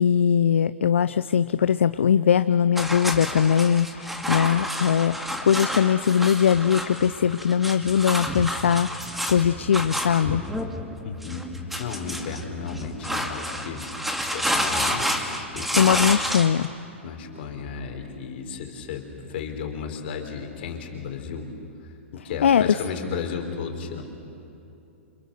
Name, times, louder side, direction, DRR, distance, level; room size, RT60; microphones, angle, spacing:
voice 1, 0.0-8.9 9.3-10.4 15.8-16.7 22.4-22.8, left 8 dB, 70° left, 14 dB, 0.5 m, -21 dB
sound 1, 2.8-16.7, equal, ahead, 2.2 m, -29 dB
voice 2, 11.0-15.8 17.0-21.5 21.8-24.0, left 5 dB, 55° left, 4 dB, 4.1 m, -34 dB
29.5 x 27.0 x 6.7 m, 2.7 s
figure-of-eight pair, 110°, 7 cm